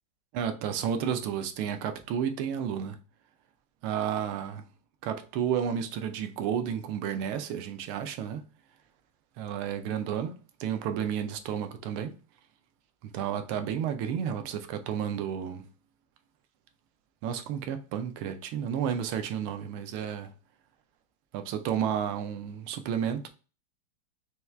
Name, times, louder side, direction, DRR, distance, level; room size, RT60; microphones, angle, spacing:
voice 1, 0.3-3.0 3.8-4.6 5.0-8.4 9.4-12.1 13.0-15.7 17.2-20.3 21.3-23.3, right 8 dB, 90° right, 1.5 m, -31 dB
5.7 x 2.3 x 3.2 m
omnidirectional pair, 2.3 m